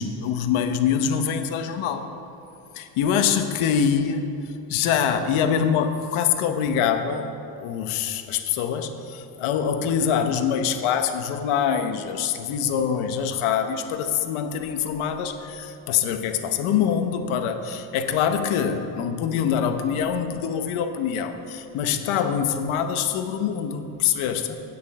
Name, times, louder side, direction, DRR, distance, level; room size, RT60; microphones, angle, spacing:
voice 1, 0.0-2.1 2.7-4.2 4.7-7.3 7.6-24.6, left 7 dB, 75° left, 8 dB, 0.9 m, -24 dB
8.7 x 7.2 x 7.4 m, 2.8 s
cardioid pair, 150°, 49 cm